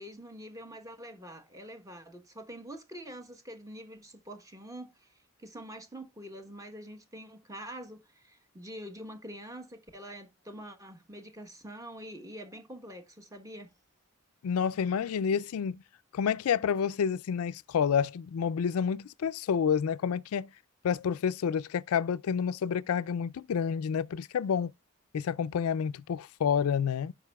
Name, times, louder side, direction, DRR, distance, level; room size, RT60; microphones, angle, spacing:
voice 1, 0.0-5.1 5.4-13.7, equal, 15° right, 1.0 m, -45 dB
voice 2, 14.4-15.8 16.1-20.5 20.8-24.7 25.1-27.1, left 7 dB, 80° left, 0.4 m, -29 dB
15.5 x 5.4 x 2.3 m
head